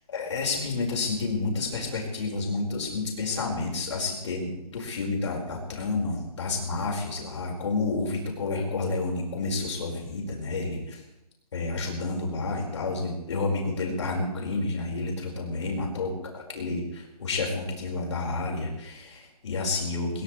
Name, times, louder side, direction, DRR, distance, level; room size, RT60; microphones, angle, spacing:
voice 1, 0.1-11.0 11.5-16.8 17.2-20.2, left 3 dB, 45° left, 0 dB, 5.2 m, -30 dB
20.0 x 19.5 x 3.3 m, 0.89 s
hypercardioid pair, 170°, 20 cm